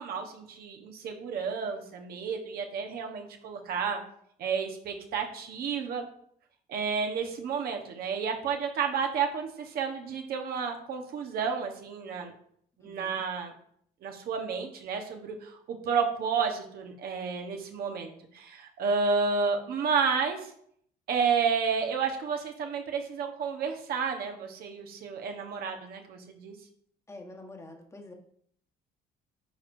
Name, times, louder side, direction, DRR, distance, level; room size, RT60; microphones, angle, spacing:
voice 1, 0.0-4.0 4.4-6.0 6.7-12.3 12.8-13.5 14.0-20.5 21.1-26.5, right 5 dB, 65° right, 3 dB, 1.2 m, -31 dB
voice 2, 12.8-13.2 27.1-28.1, left 2 dB, 15° left, 2 dB, 1.3 m, -47 dB
9.6 x 4.5 x 2.7 m, 0.65 s
cardioid pair, 110°, 17 cm